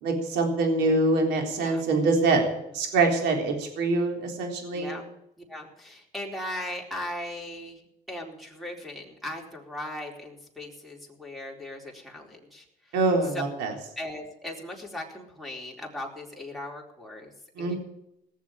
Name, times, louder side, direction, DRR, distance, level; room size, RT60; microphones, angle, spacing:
voice 1, 0.0-2.4 2.7-4.9 12.9-13.7 17.6-17.7, right 3 dB, 85° right, 2 dB, 3.8 m, -24 dB
voice 2, 4.7-5.1 5.5-7.8 8.1-12.6 13.3-13.4 14.0-17.3 17.6-17.7, left 1 dB, ahead, -2 dB, 4.2 m, -38 dB
18.5 x 7.3 x 9.1 m, 0.83 s
cardioid pair, 110°, 17 cm